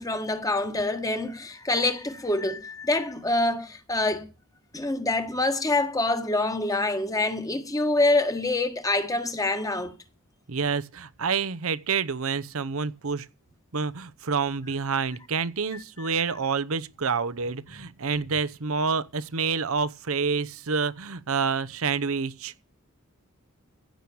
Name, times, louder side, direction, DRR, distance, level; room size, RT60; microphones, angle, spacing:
voice 1, 0.0-4.3 4.7-9.9, left 2 dB, 15° left, 1.5 m, -26 dB
voice 2, 10.5-13.3 13.7-22.5, right 5 dB, 65° right, 0.8 m, -28 dB
15.5 x 6.3 x 7.1 m
head